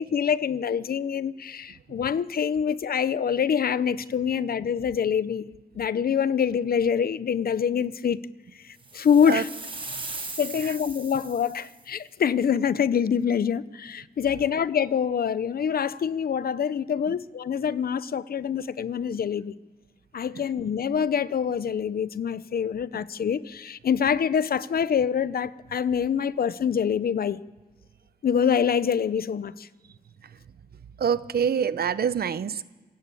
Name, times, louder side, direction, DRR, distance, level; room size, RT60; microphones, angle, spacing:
voice 1, 0.0-8.2 8.6-9.5 10.4-19.5 20.1-27.4 28.2-29.7, left 7 dB, 70° left, 16 dB, 0.7 m, -25 dB
sound 1, 8.8-11.9, right 3 dB, 35° right, 6.5 m, -38 dB
voice 2, 31.0-32.6, right 7 dB, 75° right, 15 dB, 0.8 m, -26 dB
26.5 x 21.0 x 8.5 m, 1.3 s
wide cardioid pair, 120°, 16 cm